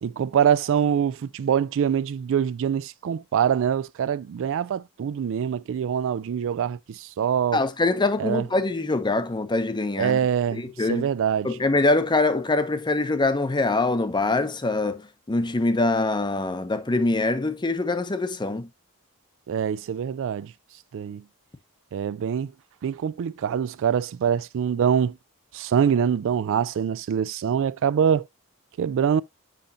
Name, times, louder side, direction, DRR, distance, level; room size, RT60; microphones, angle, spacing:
voice 1, 0.0-7.6 8.2-8.4 10.0-10.6 10.9-11.6 19.5-20.5 20.9-21.2 21.9-22.5 22.8-25.2 25.5-28.2 28.8-29.2, right 8 dB, 60° right, 0.3 m, -24 dB
voice 2, 7.5-10.2 10.5-11.1 11.4-15.0 15.3-18.7, left 2 dB, 20° left, 0.7 m, -24 dB
7.6 x 5.1 x 2.6 m
head